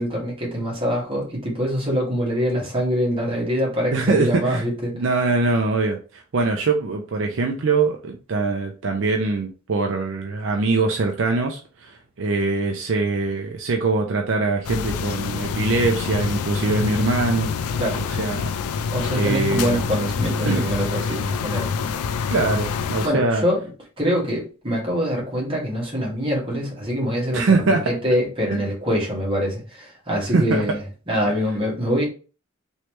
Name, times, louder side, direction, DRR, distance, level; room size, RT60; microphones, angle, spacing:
voice 1, 0.0-5.0 17.8-18.0 18.9-21.7 23.0-23.6 24.0-32.0, equal, 25° right, -3 dB, 1.3 m, -24 dB
voice 2, 3.9-4.6 4.9-17.5 18.2-18.5 19.1-19.8 20.5-20.7 22.3-23.4 27.3-27.8 28.5-28.6 30.3-30.6, right 3 dB, 60° right, 3 dB, 0.4 m, -22 dB
sound 1, 14.6-23.1, left 5 dB, 85° left, 0.4 m, -26 dB
3.2 x 3.1 x 3.0 m, 0.36 s
head